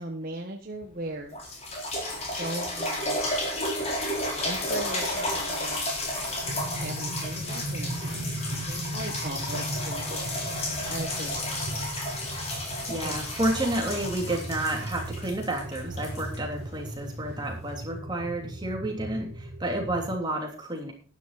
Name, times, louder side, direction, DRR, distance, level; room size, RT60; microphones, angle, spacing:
voice 1, 0.0-1.6 2.1-3.7 4.4-5.8 6.8-10.2 10.9-11.9 13.0-13.2, right 2 dB, 45° right, 1 dB, 1.5 m, -39 dB
sound 1, 0.8-0.9 1.3-17.1 17.7-17.8, left 1 dB, 30° left, 4.1 m, -32 dB
sound 2, 6.4-20.2, right 1 dB, 80° right, 2.0 m, -37 dB
voice 2, 12.9-20.9, right 1 dB, 20° right, 1 dB, 3.1 m, -30 dB
12.0 x 11.0 x 4.2 m, 0.37 s
head